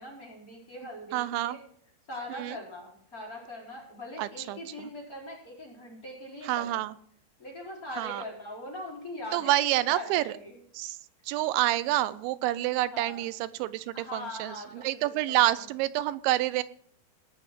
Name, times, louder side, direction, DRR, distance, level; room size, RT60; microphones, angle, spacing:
voice 1, 0.0-1.6 2.1-6.8 7.4-10.6 12.9-13.3 13.9-15.0 15.3-15.4, left 1 dB, 20° left, -3 dB, 4.1 m, -41 dB
voice 2, 1.1-1.6 2.3-2.6 4.2-4.9 6.4-7.0 8.0-8.2 9.3-10.3 10.7-11.0 11.3-16.6, right 15 dB, 85° right, 16 dB, 3.0 m, -28 dB
18.0 x 6.4 x 7.4 m, 0.62 s
omnidirectional pair, 5.2 m